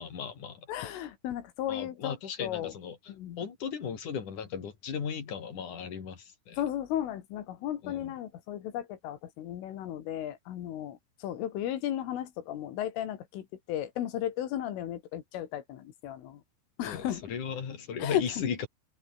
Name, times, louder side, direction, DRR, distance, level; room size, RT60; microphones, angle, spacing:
voice 1, 0.0-0.7 1.7-3.0 3.4-6.6 7.8-8.1 16.8-18.7, left 7 dB, 45° left, 4.4 m, -36 dB
voice 2, 0.7-2.2 2.4-2.7 3.1-3.4 6.5-16.4 16.8-17.3 18.0-18.3, left 11 dB, 85° left, 4.9 m, -35 dB
omnidirectional pair, 5.6 m